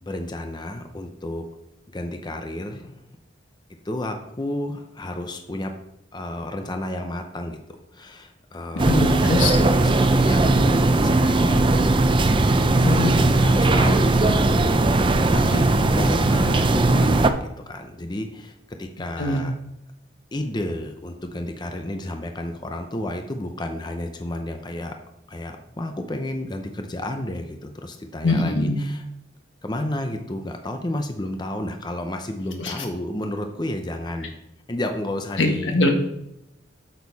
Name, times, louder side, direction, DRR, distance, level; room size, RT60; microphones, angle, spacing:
voice 1, 0.0-1.4 1.9-3.0 3.8-5.7 6.1-7.6 7.9-9.2 9.8-12.0 13.3-19.5 20.3-24.9 25.3-29.0 29.6-34.3 34.7-35.8, left 1 dB, 25° left, 5 dB, 0.7 m, -31 dB
voice 2, 8.8-9.6 12.8-13.1 19.2-19.4 28.2-28.8 32.6-32.7 35.4-35.9, left 2 dB, 90° left, 3 dB, 1.6 m, -22 dB
sound 1, 8.8-17.3, right 2 dB, 25° right, 0.5 m, -18 dB
8.3 x 6.7 x 4.1 m, 0.83 s
head